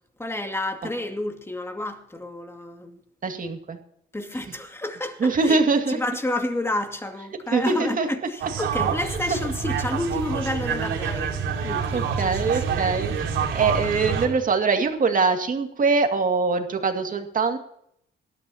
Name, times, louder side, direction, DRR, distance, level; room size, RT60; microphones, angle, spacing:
voice 1, 0.2-3.0 4.1-5.6 5.9-11.4 11.6-12.8, left 1 dB, 10° left, 2.2 m, -30 dB
voice 2, 3.2-3.8 5.2-6.0 7.5-8.1 11.9-17.6, right 4 dB, 45° right, 2.2 m, -23 dB
sound 1, 8.4-14.3, right 6 dB, 85° right, 2.9 m, -27 dB
19.5 x 12.5 x 2.8 m
cardioid pair, 90°, 20 cm